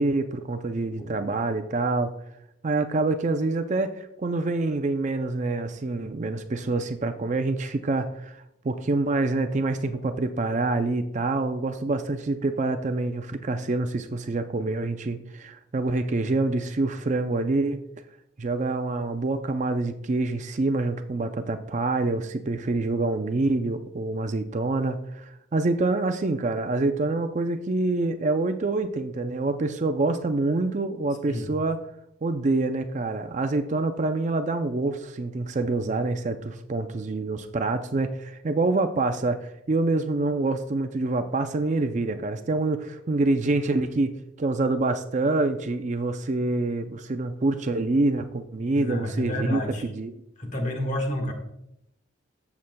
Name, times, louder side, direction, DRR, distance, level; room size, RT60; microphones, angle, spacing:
voice 1, 0.0-2.1 2.6-17.8 18.4-31.8 32.2-50.2, right 2 dB, 40° right, 8 dB, 0.4 m, -26 dB
voice 2, 48.8-49.8 50.4-51.3, left 1 dB, 40° left, 3 dB, 1.4 m, -29 dB
14.0 x 7.1 x 2.2 m, 0.80 s
head